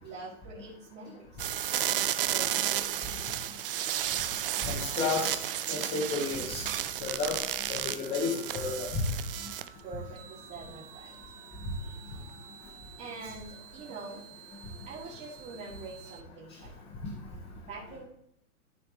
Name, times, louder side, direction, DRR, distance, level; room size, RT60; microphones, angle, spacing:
voice 1, 0.0-1.5 2.3-3.8 9.8-11.1 13.0-14.2 14.9-16.8 17.6-18.0, right 3 dB, 25° right, -7 dB, 2.2 m, -45 dB
sound 1, 1.4-9.8 10.2-16.2, right 11 dB, 40° right, 0.5 m, -35 dB
voice 2, 4.6-5.4 5.7-6.6 7.0-7.4 7.7-9.0, left 4 dB, 20° left, -2 dB, 1.6 m, -31 dB
13.5 x 5.0 x 3.2 m, 0.72 s
hypercardioid pair, 120°, 45 cm